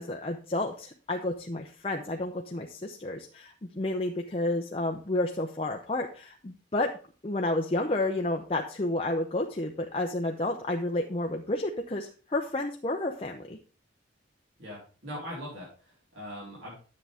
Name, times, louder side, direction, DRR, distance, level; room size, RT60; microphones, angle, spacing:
voice 1, 0.0-6.9 7.2-13.6, left 2 dB, 30° left, 2 dB, 0.7 m, -31 dB
voice 2, 14.6-16.7, equal, 80° right, -6 dB, 4.4 m, -41 dB
10.5 x 7.5 x 3.5 m, 0.38 s
head